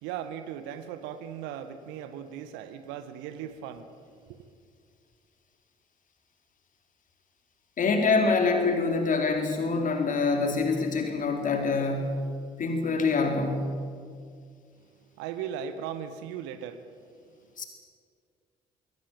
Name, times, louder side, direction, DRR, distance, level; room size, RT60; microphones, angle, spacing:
voice 1, 0.0-3.9 4.2-4.4 15.2-16.8, right 9 dB, 60° right, 12 dB, 1.4 m, -37 dB
voice 2, 7.8-12.3 12.6-13.8 17.6-17.7, left 4 dB, 40° left, 4 dB, 4.1 m, -25 dB
21.0 x 19.0 x 8.8 m, 2.1 s
figure-of-eight pair, 45°, 20 cm